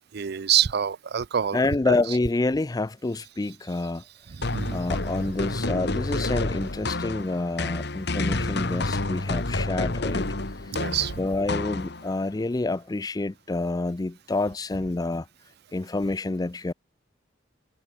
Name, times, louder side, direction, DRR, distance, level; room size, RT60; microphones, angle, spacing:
voice 1, 0.1-1.6 1.9-2.0 4.4-4.8 10.7-11.1, right 9 dB, 55° right, 0.5 m, -26 dB
voice 2, 1.5-4.0 4.7-10.3 10.7-10.8 11.2-15.3 15.7-16.7, left 2 dB, 20° left, 0.4 m, -28 dB
sound 1, 4.4-12.2, left 2 dB, 55° left, 1.9 m, -29 dB
head